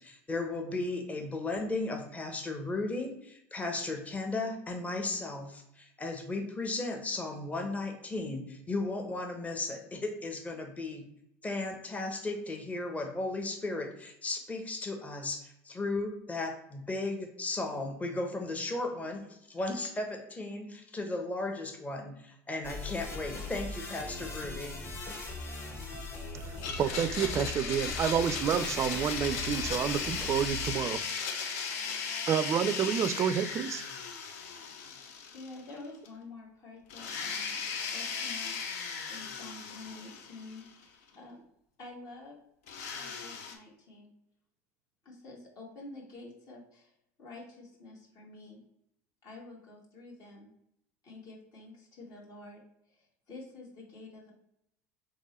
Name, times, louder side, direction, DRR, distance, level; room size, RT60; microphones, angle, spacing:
voice 1, 0.0-11.0 11.4-24.8, left 2 dB, 20° left, 3 dB, 0.8 m, -35 dB
sound 1, 22.6-30.8, left 2 dB, 35° left, 1.3 m, -40 dB
voice 2, 26.3-31.1 32.3-33.8, right 8 dB, 40° right, 14 dB, 0.4 m, -29 dB
Domestic sounds home sounds, 26.6-35.8 36.1-36.2 36.9-40.8 42.7-43.6, left 6 dB, 75° left, 0.7 m, -37 dB
voice 3, 35.3-38.8 39.1-40.9 41.2-41.4 41.8-42.4 42.9-44.1 45.0-46.9 47.2-48.6 49.2-50.5 51.0-54.3, left 2 dB, 50° left, -2 dB, 1.6 m, -49 dB
3.7 x 3.1 x 4.1 m, 0.76 s
hypercardioid pair, 80°, 8 cm